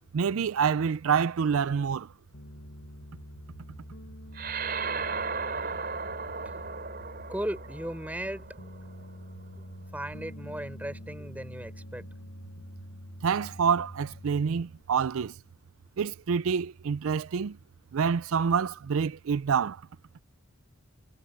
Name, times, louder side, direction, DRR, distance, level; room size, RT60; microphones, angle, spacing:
voice 1, 0.1-2.1 13.2-15.3 16.0-17.6 17.9-19.8, right 6 dB, 80° right, 0.4 m, -27 dB
Piano, 2.3-14.8, equal, 70° left, 6.4 m, -46 dB
sound 1, 4.3-9.1, right 5 dB, 45° right, 4.6 m, -35 dB
voice 2, 7.3-8.5 9.9-12.0, right 1 dB, 5° right, 4.2 m, -36 dB
head